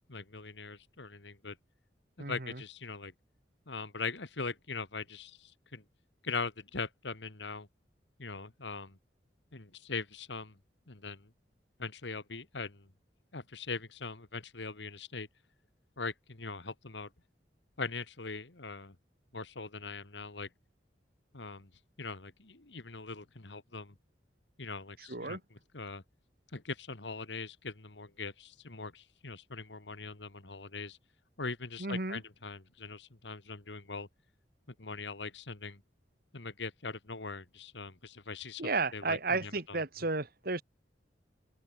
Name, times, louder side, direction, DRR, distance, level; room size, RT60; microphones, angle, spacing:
voice 1, 0.1-1.6 2.3-3.1 3.7-5.8 6.2-7.7 8.2-9.0 9.5-10.6 10.9-11.3 11.8-12.9 13.3-15.3 16.0-17.1 17.8-19.0 19.3-20.5 21.3-21.7 22.0-24.0 24.6-26.0 26.5-31.0 31.4-34.1 34.8-35.8 36.3-39.8, left 4 dB, 85° left, 2.0 m, -41 dB
voice 2, 25.1-25.4 31.8-32.2 38.6-40.6, right 3 dB, 55° right, 2.5 m, -33 dB
head